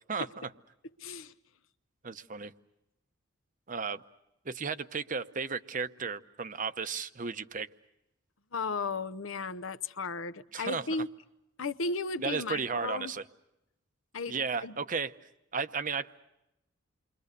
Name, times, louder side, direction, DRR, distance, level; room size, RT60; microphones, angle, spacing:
voice 1, 0.1-0.5 2.0-2.5 3.7-4.0 4.4-7.7 10.5-11.0 12.2-13.2 14.3-15.1 15.5-16.1, right 5 dB, 40° right, 0.8 m, -34 dB
voice 2, 1.0-1.3 8.5-11.1 11.6-13.1 14.1-14.4 14.6-14.8, left 3 dB, 75° left, 0.9 m, -35 dB
29.0 x 23.5 x 6.7 m
head